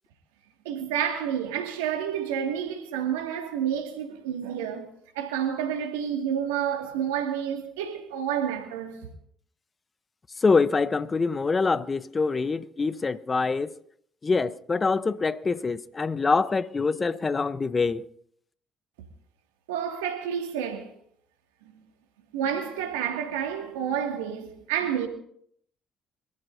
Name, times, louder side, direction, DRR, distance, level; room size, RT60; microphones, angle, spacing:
voice 1, 0.6-4.9 5.1-9.0 19.7-20.9 22.3-25.1, right 9 dB, 85° right, 2.2 m, -29 dB
voice 2, 10.4-13.7 14.2-18.0, left 4 dB, 35° left, 0.8 m, -25 dB
25.0 x 14.0 x 2.7 m
hypercardioid pair, 50°, 0 cm